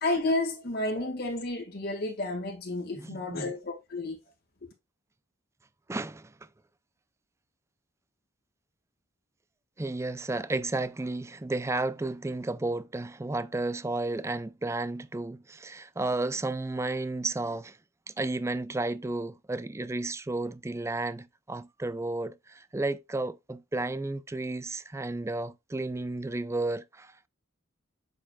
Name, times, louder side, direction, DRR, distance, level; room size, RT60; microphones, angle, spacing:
voice 1, 0.0-4.2, left 2 dB, 50° left, 1.9 m, -31 dB
voice 2, 2.9-3.5 5.9-6.3 9.8-17.8 18.1-27.3, right 2 dB, 15° right, 0.4 m, -32 dB
7.6 x 6.5 x 2.3 m
head